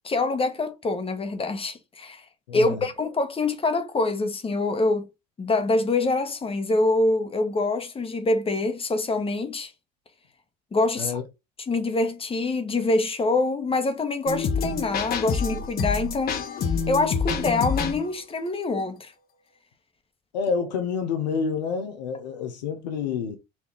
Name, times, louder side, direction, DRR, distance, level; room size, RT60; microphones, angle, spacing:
voice 1, 0.0-2.2 2.5-5.1 5.4-9.7 10.7-11.2 11.7-16.4 16.9-19.1, left 2 dB, 25° left, 1.2 m, -25 dB
voice 2, 2.5-2.9 11.0-11.2 20.3-23.4, left 5 dB, 90° left, 0.9 m, -28 dB
sound 1, 14.3-18.1, left 5 dB, 45° left, 1.1 m, -27 dB
4.4 x 2.9 x 3.4 m
hypercardioid pair, 75°, 21 cm